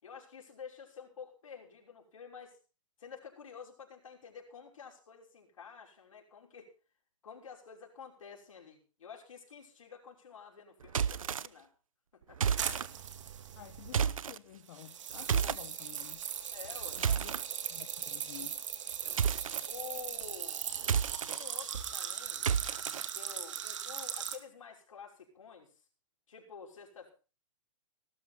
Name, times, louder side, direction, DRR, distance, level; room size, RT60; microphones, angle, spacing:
voice 1, 0.0-2.6 3.0-6.7 7.2-11.7 12.1-12.8 16.5-17.9 19.7-20.7 21.3-22.4 23.1-25.8 26.3-27.1, left 6 dB, 80° left, 1 dB, 6.0 m, -50 dB
sound 1, 10.8-11.5 12.3-12.9 13.8-14.4 15.3-15.6 16.6-17.4 19.2-19.7 20.8-21.4 22.4-23.1, right 7 dB, 85° right, 0.8 m, -31 dB
sound 2, 12.6-14.2 14.7-24.4, right 8 dB, 65° right, 2.6 m, -39 dB
voice 2, 13.5-16.2 17.0-17.3 17.7-18.6, left 13 dB, 50° left, 7 dB, 1.4 m, -50 dB
19.0 x 13.0 x 4.2 m, 0.35 s
hypercardioid pair, 145°, 17 cm